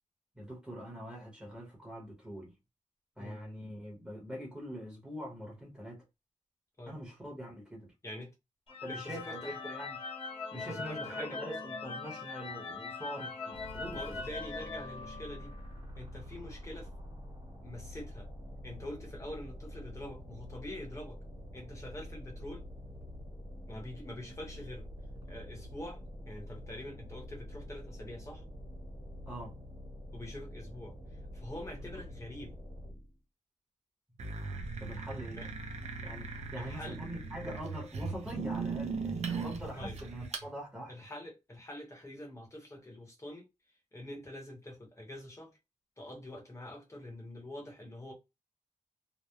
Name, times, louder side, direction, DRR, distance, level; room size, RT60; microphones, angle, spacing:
voice 1, 0.4-2.5 3.2-6.0 6.9-7.9 8.8-10.0 10.5-14.2 29.3-29.5 31.9-32.0 34.8-35.4 36.0-40.9, equal, 10° right, 0.9 m, -43 dB
sound 1, 8.7-15.7, left 4 dB, 45° left, 0.5 m, -41 dB
voice 2, 8.9-9.6 10.5-11.4 13.9-15.5 16.0-16.9 17.6-18.3 18.6-21.2 21.5-22.6 23.7-24.9 25.3-26.0 26.3-28.4 30.1-32.5 35.3-35.5 36.5-37.0 39.7-40.0 40.9-43.5 43.9-45.6 46.0-48.1, left 1 dB, 25° left, 0.8 m, -45 dB
sound 2, 13.5-33.2, equal, 35° right, 1.3 m, -46 dB
sound 3, 34.2-40.5, right 4 dB, 60° right, 0.5 m, -38 dB
2.9 x 2.0 x 2.2 m
wide cardioid pair, 180°, 13 cm